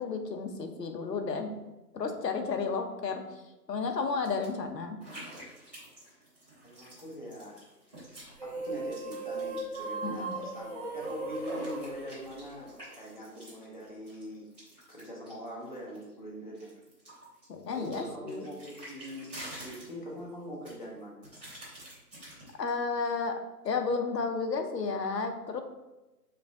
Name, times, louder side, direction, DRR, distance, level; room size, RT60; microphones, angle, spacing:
voice 1, 0.0-1.6 1.9-3.2 3.7-5.0 10.0-10.4 17.5-18.5 22.6-25.6, left 4 dB, 85° left, 5 dB, 0.9 m, -32 dB
sound 1, 4.2-4.5 5.0-8.4 8.6-10.5 10.8-16.1 16.5-20.3 20.6-22.7, equal, 5° right, 1.1 m, -48 dB
voice 2, 6.6-7.6 8.4-14.4 14.9-16.7 17.7-21.2, equal, 30° left, -3 dB, 0.5 m, -43 dB
sound 2, 8.3-13.0, right 2 dB, 30° right, 1.1 m, -37 dB
4.9 x 2.4 x 3.6 m, 1.0 s
hypercardioid pair, 170°, 48 cm